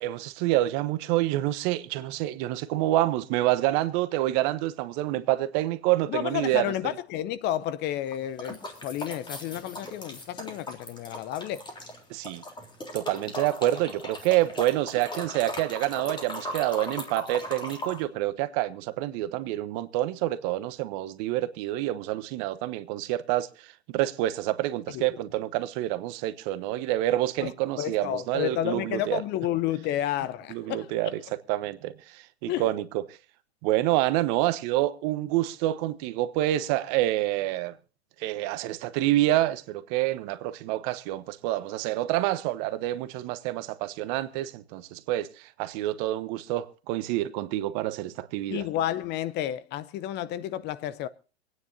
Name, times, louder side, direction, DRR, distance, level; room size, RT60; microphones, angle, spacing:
voice 1, 0.0-6.7 12.1-12.4 12.9-29.2 30.5-31.2 31.5-32.8 33.6-37.7 38.2-48.7, right 15 dB, 45° right, 1.1 m, -27 dB
voice 2, 6.1-11.7 24.9-25.1 27.4-27.5 27.8-31.1 32.5-32.7 48.5-51.1, left 12 dB, 35° left, 0.7 m, -31 dB
sound 1, 8.1-12.0 12.2-18.0, left 1 dB, 15° left, 3.4 m, -38 dB
26.5 x 9.6 x 2.7 m
hypercardioid pair, 110°, 32 cm